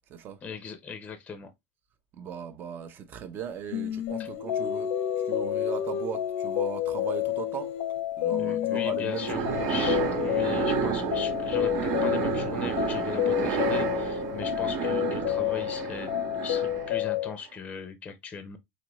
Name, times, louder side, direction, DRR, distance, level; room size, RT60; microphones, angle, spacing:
voice 1, 0.4-1.5 4.2-4.3 8.4-9.4 9.7-16.1 16.4-18.6, left 6 dB, 20° left, 0.6 m, -39 dB
voice 2, 2.1-4.9 5.2-7.7 8.2-9.7, right 8 dB, 30° right, 0.7 m, -38 dB
Singing, 3.7-8.0 8.3-14.3, left 6 dB, 85° left, 0.9 m, -37 dB
sound 1, 4.1-17.3, left 13 dB, 60° left, 0.5 m, -30 dB
sound 2, 9.1-17.1, right 8 dB, 50° right, 1.0 m, -31 dB
5.1 x 2.7 x 3.0 m
supercardioid pair, 155°, 7 cm